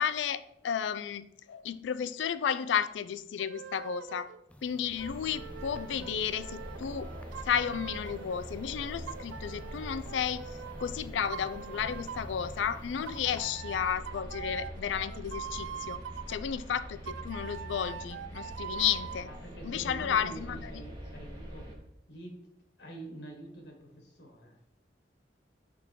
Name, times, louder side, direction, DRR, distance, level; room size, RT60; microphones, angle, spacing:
voice 1, 0.0-4.3 4.6-7.1 7.4-10.5 10.8-16.0 16.3-19.3 19.6-20.8, left 8 dB, 90° left, 15 dB, 0.4 m, -33 dB
sound 1, 3.4-4.4 5.0-8.4 9.1-10.9 11.3-12.4 13.1-16.4 17.1-19.3, right 8 dB, 85° right, 0.4 m, -43 dB
sound 2, 4.5-13.6, left 1 dB, 5° left, 0.4 m, -53 dB
sound 3, 4.9-21.7, equal, 25° right, 1.3 m, -44 dB
voice 2, 19.2-21.7 22.1-22.4 22.8-24.5, right 2 dB, 70° left, 2 dB, 1.4 m, -46 dB
5.9 x 3.7 x 4.5 m, 0.79 s
head